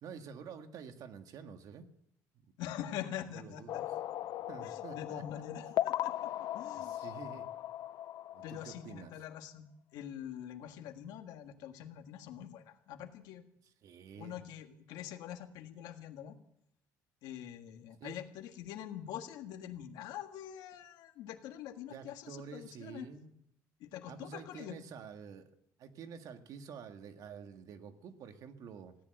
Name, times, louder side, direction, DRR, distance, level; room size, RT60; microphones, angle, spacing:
voice 1, 0.0-1.9 3.3-3.9 4.5-5.4 6.8-7.5 8.3-9.2 13.6-14.4 18.0-18.2 21.9-23.4 24.1-25.5 25.8-29.0, right 6 dB, 65° right, 7 dB, 1.7 m, -49 dB
voice 2, 2.6-3.8 4.6-7.1 8.4-9.7 9.9-13.4 14.2-16.4 17.2-23.1 23.8-24.7, left 10 dB, 90° left, 6 dB, 1.6 m, -45 dB
sound 1, 3.7-9.0, left 12 dB, 70° left, 0.6 m, -38 dB
17.0 x 10.5 x 7.8 m, 0.73 s
cardioid pair, 115°, 7 cm